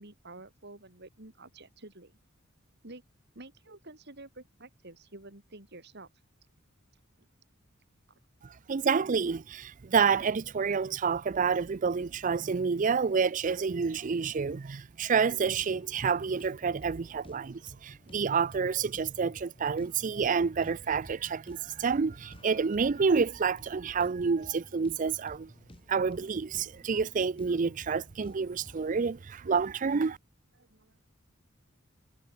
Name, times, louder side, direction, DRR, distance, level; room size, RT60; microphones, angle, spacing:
voice 1, 0.0-2.2 2.8-3.0 3.4-6.1 30.6-31.0, right 2 dB, 55° right, 3.7 m, -49 dB
voice 2, 8.7-25.5 25.9-30.2, right 5 dB, 40° right, 0.4 m, -28 dB
sound 1, 15.6-29.1, left 1 dB, 25° left, 2.2 m, -55 dB
head